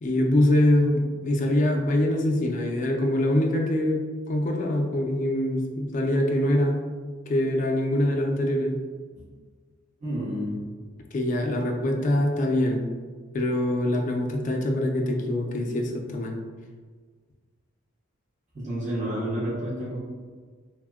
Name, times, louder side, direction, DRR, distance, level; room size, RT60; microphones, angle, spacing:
voice 1, 0.0-6.9 7.3-8.8 11.1-12.9 13.3-16.4, left 1 dB, 35° left, 2 dB, 0.3 m, -24 dB
voice 2, 10.0-10.6 18.5-20.0, equal, 35° right, -7 dB, 0.7 m, -30 dB
3.5 x 2.0 x 2.2 m, 1.5 s
head